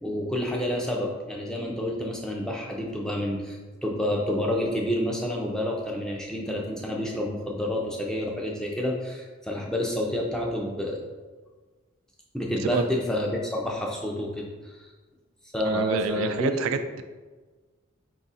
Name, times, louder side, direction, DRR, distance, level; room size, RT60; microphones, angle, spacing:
voice 1, 0.0-11.0 12.3-14.5 14.7-14.8 15.5-16.7, left 1 dB, 5° left, -2 dB, 0.4 m, -29 dB
voice 2, 15.6-17.0, right 5 dB, 85° right, 9 dB, 0.3 m, -28 dB
4.6 x 2.4 x 4.0 m, 1.3 s
head